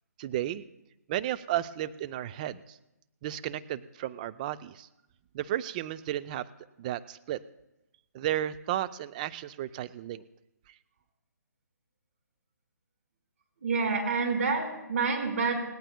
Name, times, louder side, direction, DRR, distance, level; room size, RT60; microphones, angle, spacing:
voice 1, 0.2-0.6 1.1-2.8 3.2-4.9 5.3-6.5 6.8-7.4 8.1-10.2, right 12 dB, 25° right, 12 dB, 0.5 m, -33 dB
voice 2, 13.6-15.6, right 4 dB, 55° right, 2 dB, 4.5 m, -28 dB
29.0 x 17.5 x 2.2 m, 0.91 s
figure-of-eight pair, 145°, 9 cm